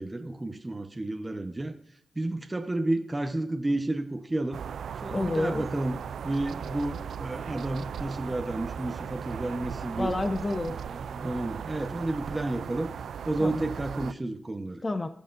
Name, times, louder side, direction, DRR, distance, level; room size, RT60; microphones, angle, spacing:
voice 1, 0.0-1.8 2.1-4.6 5.0-10.1 10.7-12.9 13.3-14.8, right 2 dB, 25° right, 5 dB, 1.0 m, -31 dB
sound 1, 4.5-14.1, right 7 dB, 85° right, 0.3 m, -37 dB
voice 2, 5.1-5.7 10.0-10.8 13.4-13.7 14.8-15.1, left 2 dB, 35° left, 10 dB, 0.7 m, -29 dB
17.0 x 6.7 x 2.6 m, 0.70 s
cardioid pair, 50°, 0 cm